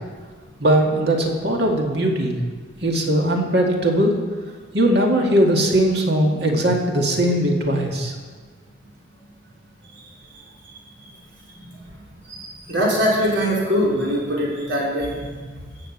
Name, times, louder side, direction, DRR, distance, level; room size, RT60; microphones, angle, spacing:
voice 1, 0.6-2.4 2.8-4.1 4.7-8.1, right 1 dB, 55° right, 1 dB, 2.2 m, -19 dB
voice 2, 12.3-15.3, equal, 70° right, -4 dB, 4.1 m, -22 dB
16.5 x 7.1 x 7.3 m, 1.4 s
head